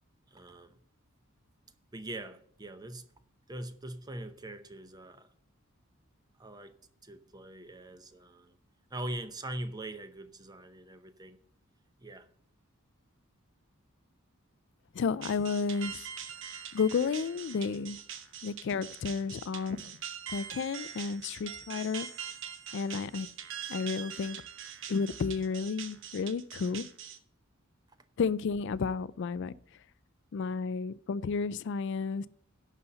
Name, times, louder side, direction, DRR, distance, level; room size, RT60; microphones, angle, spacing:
voice 1, 0.3-0.8 1.9-3.0 3.5-5.3 6.4-6.7 7.0-8.6 8.9-11.4 12.0-12.3, right 1 dB, 20° right, 0.7 m, -42 dB
voice 2, 14.9-16.1 16.7-18.0 18.4-20.0 20.3-22.1 22.7-23.3 23.7-24.4 24.9-26.9 28.2-29.5 30.3-32.3, left 5 dB, 60° left, 0.3 m, -32 dB
sound 1, 15.2-27.2, right 8 dB, 60° right, 1.0 m, -43 dB
11.0 x 4.1 x 7.8 m
head